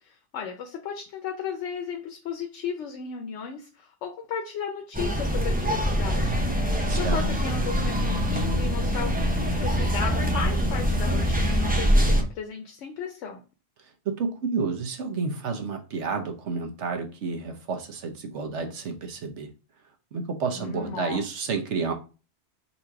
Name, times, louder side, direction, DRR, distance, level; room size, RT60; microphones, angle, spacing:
voice 1, 0.0-9.1 9.6-13.4 20.6-21.2, left 6 dB, 85° left, 5 dB, 1.0 m, -35 dB
sound 1, 4.9-12.2, equal, 10° right, 0.5 m, -24 dB
voice 2, 6.8-7.2 14.0-19.5 20.1-21.9, right 4 dB, 80° right, 5 dB, 1.2 m, -30 dB
4.0 x 2.8 x 4.6 m, 0.33 s
omnidirectional pair, 1.2 m